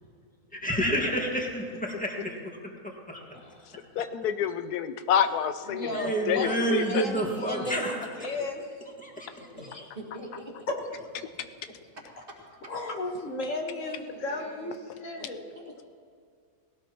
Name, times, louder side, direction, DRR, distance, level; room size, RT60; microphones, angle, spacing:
voice 1, 0.5-2.4 3.1-3.2 5.9-8.0 9.0-9.5, right 1 dB, 5° left, 0 dB, 1.7 m, -29 dB
voice 2, 3.3-3.6 5.7-8.8 9.7-9.9 10.7-10.8 12.7-15.5, left 2 dB, 55° left, 1 dB, 1.7 m, -34 dB
voice 3, 3.9-7.0, left 8 dB, 90° left, 10 dB, 1.2 m, -28 dB
voice 4, 9.2-10.5 12.3-12.4 12.6-12.7 13.7-14.8 15.2-15.3 15.5-15.8, right 1 dB, 35° right, -2 dB, 2.2 m, -45 dB
19.0 x 17.0 x 3.0 m, 2.1 s
omnidirectional pair, 1.6 m